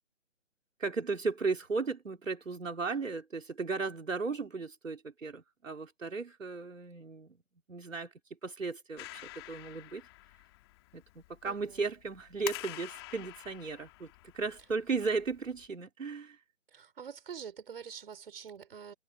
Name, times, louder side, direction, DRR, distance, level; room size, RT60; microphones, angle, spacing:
voice 1, 0.8-7.4 7.7-8.1 8.4-10.0 10.9-16.4, right 4 dB, 75° right, 4.2 m, -35 dB
Clapping, 9.0-15.7, left 20 dB, 20° left, 2.6 m, -48 dB
voice 2, 11.4-11.8 16.7-18.9, right 7 dB, 45° right, 5.3 m, -46 dB
figure-of-eight pair, 155°, 39 cm